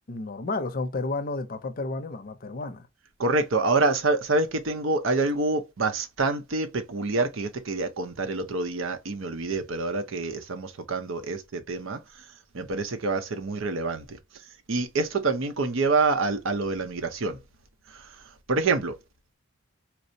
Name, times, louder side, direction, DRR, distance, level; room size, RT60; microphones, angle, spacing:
voice 1, 0.1-2.9, left 3 dB, 45° left, 0.6 m, -31 dB
voice 2, 3.2-12.0 12.5-14.2 14.7-17.4 17.9-18.1 18.5-18.9, right 3 dB, 70° right, 0.7 m, -26 dB
4.4 x 2.0 x 2.6 m
head